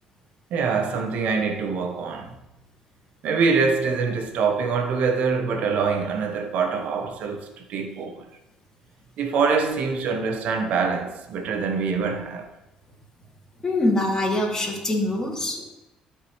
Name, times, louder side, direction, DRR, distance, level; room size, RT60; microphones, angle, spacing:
voice 1, 0.5-2.3 3.2-8.3 9.2-12.5, right 5 dB, 70° right, 1.1 m, -24 dB
voice 2, 13.6-15.6, left 1 dB, 20° left, 2.7 m, -24 dB
13.0 x 4.8 x 3.2 m
supercardioid pair, 70°, 2 cm